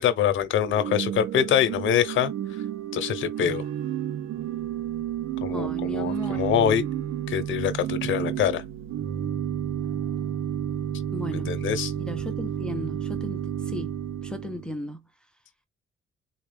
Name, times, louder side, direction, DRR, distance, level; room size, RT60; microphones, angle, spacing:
voice 1, 0.0-2.6 2.9-3.7 5.4-6.8 7.3-8.6 11.3-11.9, left 9 dB, 75° left, 0.8 m, -25 dB
Organ / Church bell, 0.5-14.7, right 10 dB, 85° right, 0.8 m, -31 dB
voice 2, 5.5-6.5 11.1-11.5 12.0-14.0 14.2-15.0, left 1 dB, 5° left, 0.5 m, -36 dB
4.1 x 2.4 x 3.3 m
cardioid pair, 110°, 20 cm